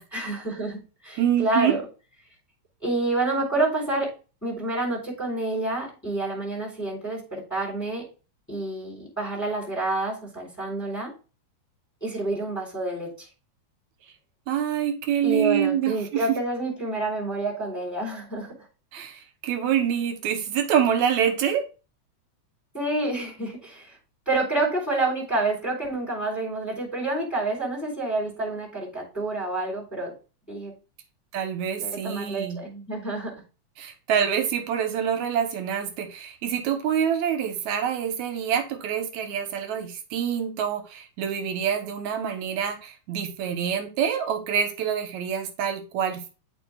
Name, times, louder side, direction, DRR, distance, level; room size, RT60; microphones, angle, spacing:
voice 1, 0.1-1.8 2.8-4.1 4.4-8.1 8.5-11.1 12.0-13.3 15.2-18.6 22.7-24.0 24.2-30.1 30.5-30.7 31.8-33.4, right 2 dB, 5° left, -4 dB, 3.3 m, -28 dB
voice 2, 1.2-1.8 14.5-16.2 18.9-21.6 31.3-32.6 33.8-46.3, right 8 dB, 75° right, 7 dB, 2.3 m, -26 dB
12.0 x 4.5 x 2.4 m, 0.33 s
omnidirectional pair, 3.4 m